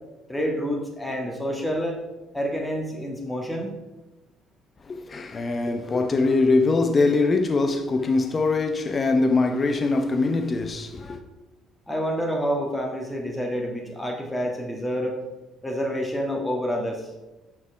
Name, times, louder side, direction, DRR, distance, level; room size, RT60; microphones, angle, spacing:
voice 1, 0.3-2.0 2.3-3.7 11.9-15.1 15.6-17.1, equal, 10° left, 1.5 m, -28 dB
voice 2, 4.9-11.2, left 3 dB, 35° left, 0.9 m, -22 dB
5.9 x 5.9 x 4.7 m
figure-of-eight pair, 55°, 0 cm